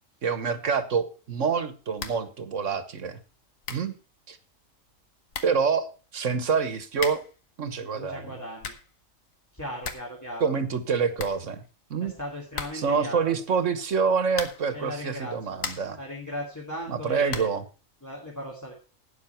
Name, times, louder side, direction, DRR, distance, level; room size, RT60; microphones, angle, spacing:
voice 1, 0.2-3.2 3.7-3.9 4.3-4.4 5.4-7.2 7.6-8.2 10.4-11.6 11.9-12.1 12.7-16.0 16.9-17.6, right 5 dB, 70° right, 12 dB, 1.6 m, -26 dB
sound 1, 2.0-2.3 2.6-2.7 3.3-3.4 3.6-4.0 4.9-5.0 5.3-5.7 6.9-7.4 8.3-9.0 9.3-9.4 9.6-10.2 10.4-10.5 10.8-10.9 11.1-11.9 12.5-13.0 14.3-14.8 15.3-16.0 17.3-17.7, left 6 dB, 80° left, 1.7 m, -37 dB
voice 2, 7.9-8.7 9.5-10.5 12.0-13.3 14.7-15.6 16.0-17.5 18.0-18.7, equal, 15° left, -3 dB, 2.5 m, -37 dB
12.0 x 9.2 x 4.4 m, 0.34 s
omnidirectional pair, 1.4 m